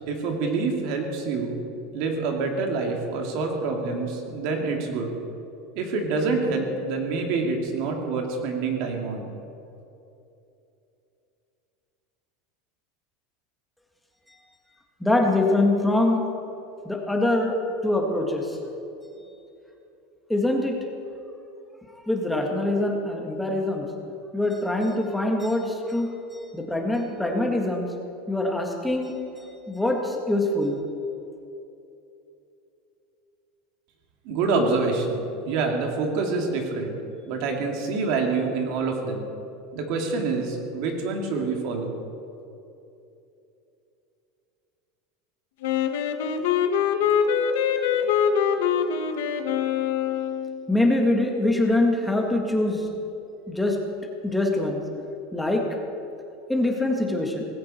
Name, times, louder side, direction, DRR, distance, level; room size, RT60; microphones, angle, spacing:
voice 1, 0.1-1.6 1.9-5.1 5.7-9.3 34.2-36.9 37.3-39.3 39.7-41.9, right 4 dB, 50° right, 2 dB, 2.8 m, -26 dB
voice 2, 15.0-16.2 16.8-17.5 17.8-18.6 20.3-20.8 22.1-23.8 24.3-26.1 26.5-27.9 28.3-29.1 29.7-30.8 50.7-52.8 53.5-53.8 54.2-54.8 55.3-55.6 56.5-57.5, left 2 dB, 5° left, 1 dB, 1.7 m, -23 dB
Wind instrument woodwind instrument, 45.6-50.7, left 7 dB, 80° left, 1.3 m, -24 dB
19.0 x 16.5 x 4.5 m, 2.8 s
supercardioid pair, 170°, 0 cm